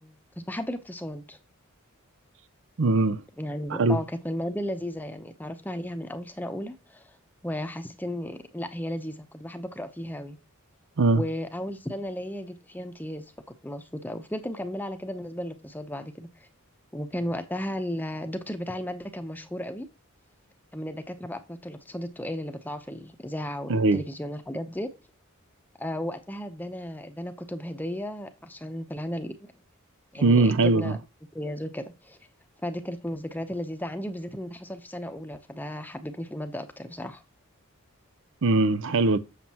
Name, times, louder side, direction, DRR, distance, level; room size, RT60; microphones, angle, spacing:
voice 1, 0.0-1.4 3.4-7.0 7.4-10.4 11.1-13.2 13.6-16.5 16.9-19.9 20.7-24.9 25.8-29.5 30.1-31.0 31.3-32.2 32.6-37.2, left 1 dB, 10° left, 0.8 m, -34 dB
voice 2, 2.8-3.2 3.7-4.0 11.0-11.2 23.7-24.0 30.2-30.9 38.4-39.2, right 3 dB, 60° right, 0.6 m, -21 dB
7.4 x 7.2 x 2.9 m
head